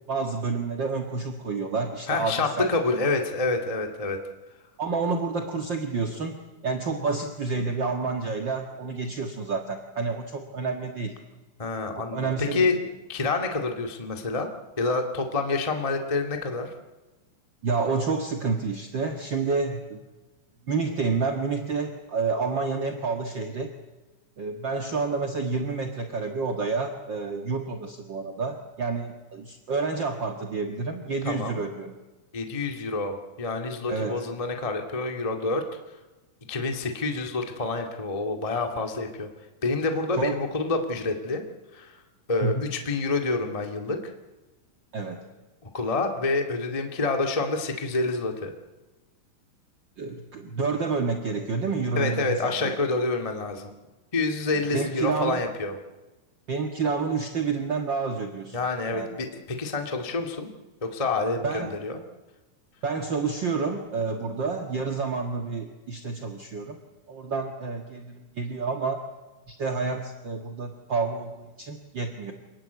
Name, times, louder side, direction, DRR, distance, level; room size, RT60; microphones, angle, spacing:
voice 1, 0.1-2.7 4.8-11.1 12.0-12.7 17.6-20.0 20.7-23.7 24.4-31.9 33.9-34.2 40.2-40.4 42.4-42.6 44.9-45.2 50.0-52.8 54.5-55.4 56.5-58.6 58.9-59.1 61.4-61.8 62.8-66.8 67.1-69.0 69.5-72.3, right 4 dB, 45° right, 4 dB, 1.5 m, -29 dB
voice 2, 2.1-4.2 11.6-12.8 13.1-14.5 14.8-16.7 31.2-31.6 32.3-35.7 36.5-39.3 39.6-41.4 41.7-42.0 42.3-44.1 45.7-48.5 51.9-53.7 54.1-55.7 58.5-60.5 60.8-62.0, left 3 dB, 15° left, 4 dB, 1.4 m, -27 dB
28.0 x 20.0 x 8.3 m, 1.1 s
omnidirectional pair, 4.6 m